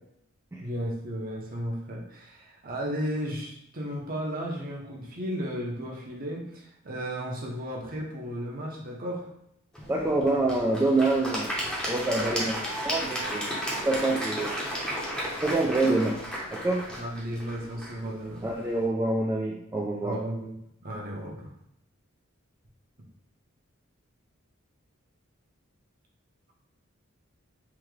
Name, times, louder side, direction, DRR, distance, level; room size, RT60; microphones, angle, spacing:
voice 1, 0.6-9.3 16.9-18.5 20.0-20.5 20.8-21.5, equal, 45° right, -1 dB, 0.8 m, -34 dB
Applause / Crowd, 9.7-18.8, equal, 5° left, 0.8 m, -34 dB
voice 2, 9.9-11.5 11.9-13.5 13.9-14.5 15.4-16.2 16.5-16.8 18.4-20.2, right 2 dB, 15° right, -2 dB, 0.3 m, -26 dB
3.6 x 2.8 x 3.2 m, 0.77 s
head